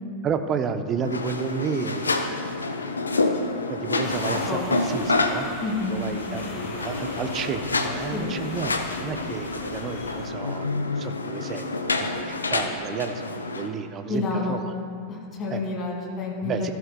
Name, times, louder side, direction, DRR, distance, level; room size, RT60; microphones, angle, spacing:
voice 1, 0.2-2.3 3.7-5.5 5.9-11.6 12.0-14.7 15.5-15.6 16.4-16.7, right 6 dB, 30° right, 8 dB, 0.6 m, -31 dB
sound 1, 1.0-13.7, left 3 dB, 75° left, 0.6 m, -28 dB
sound 2, 4.0-10.3, left 2 dB, 55° left, 2.6 m, -40 dB
voice 2, 5.6-6.0 8.1-8.3 14.1-14.6 15.1-16.7, left 3 dB, 30° left, -1 dB, 2.4 m, -29 dB
14.5 x 12.5 x 2.3 m, 2.4 s
figure-of-eight pair, 90°, 0 cm